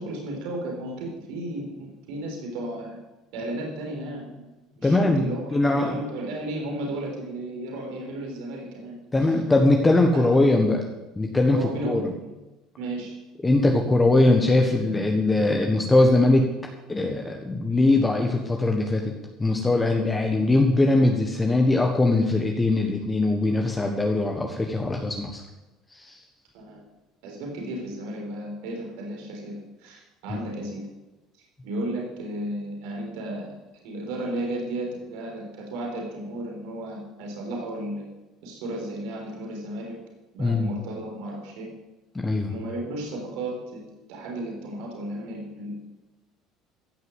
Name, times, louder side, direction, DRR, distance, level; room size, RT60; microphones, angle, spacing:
voice 1, 0.0-3.0 3.3-4.5 4.8-9.0 10.1-10.4 11.5-12.1 12.8-13.2 26.5-26.8 27.2-29.5 29.8-30.8 31.6-33.5 33.8-38.0 38.4-40.0 40.3-41.7 42.5-43.8 44.1-45.9, right 1 dB, 85° right, 0 dB, 4.1 m, -34 dB
voice 2, 4.8-5.9 9.1-10.8 11.2-12.1 13.4-16.5 16.9-19.1 19.4-25.4 25.9-26.2 30.3-30.4 40.4-40.7 42.2-42.5, left 2 dB, 15° left, 2 dB, 1.3 m, -21 dB
15.0 x 6.7 x 8.0 m, 1.1 s
cardioid pair, 120°, 0 cm